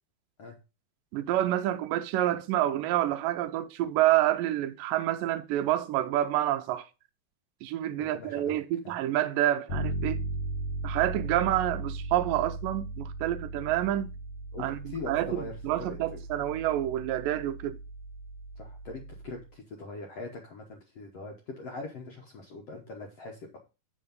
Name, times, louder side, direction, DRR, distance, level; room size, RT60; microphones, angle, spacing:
voice 1, 1.1-6.9 7.6-10.2 10.8-14.1 14.6-17.8, right 13 dB, 85° right, 1.9 m, -28 dB
voice 2, 8.0-8.6 8.8-8.9 14.5-16.2 18.6-23.6, left 3 dB, 75° left, 1.4 m, -42 dB
Bass guitar, 9.7-19.4, right 1 dB, 50° left, 2.2 m, -37 dB
8.5 x 5.2 x 5.2 m
omnidirectional pair, 4.5 m